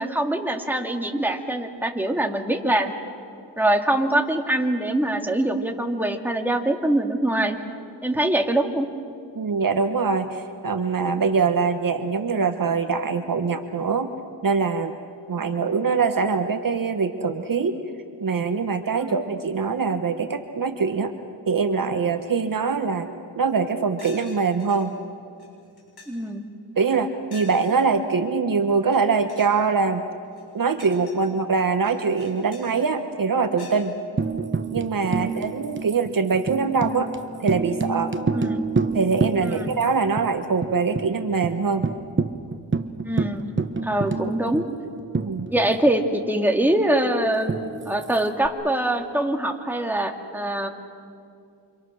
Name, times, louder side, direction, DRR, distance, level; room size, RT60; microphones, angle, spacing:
voice 1, 0.0-2.9 3.6-7.6 8.0-8.9 15.4-15.5 19.0-19.1 26.1-26.5 34.3-34.4 35.1-35.3 38.3-38.6 39.4-39.7 43.1-43.5 43.8-44.6 45.5-50.7, right 1 dB, 5° right, 3 dB, 2.2 m, -24 dB
voice 2, 9.3-14.1 14.4-14.9 15.3-17.8 18.2-21.1 21.5-23.1 23.4-24.9 26.8-30.0 30.5-34.0 34.7-37.1 37.4-38.1 38.9-41.8 45.2-45.5, right 5 dB, 45° right, 7 dB, 1.2 m, -23 dB
sound 1, 23.5-23.6 24.0-24.8 25.4-25.5 25.8-26.3 27.3-27.8 28.8-29.0 29.3-29.6 30.2-31.3 31.8-32.7 33.6-33.8, left 3 dB, 55° left, 6.9 m, -46 dB
Tambourine, 34.2-39.9 40.2-40.3 40.6-41.1 41.4-41.5 41.8-46.0 47.5-48.5, right 4 dB, 25° right, 1.0 m, -28 dB
28.5 x 26.5 x 6.5 m, 2.5 s
cardioid pair, 85°, 44 cm